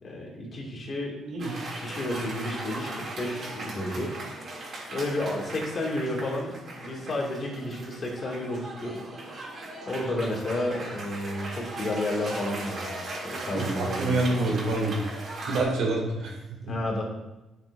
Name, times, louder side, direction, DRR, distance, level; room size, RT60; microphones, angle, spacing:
voice 1, 0.0-1.2 1.8-4.1 4.9-9.0 9.9-12.9 13.2-14.3 16.6-17.0, left 1 dB, 45° left, -2 dB, 2.9 m, -31 dB
Cheering / Applause, 1.4-15.6, right 2 dB, 55° right, 3.3 m, -38 dB
voice 2, 13.5-15.1 15.5-16.6, right 2 dB, 75° right, -2 dB, 3.2 m, -27 dB
12.0 x 6.8 x 2.9 m, 1.0 s
cardioid pair, 90°, 0 cm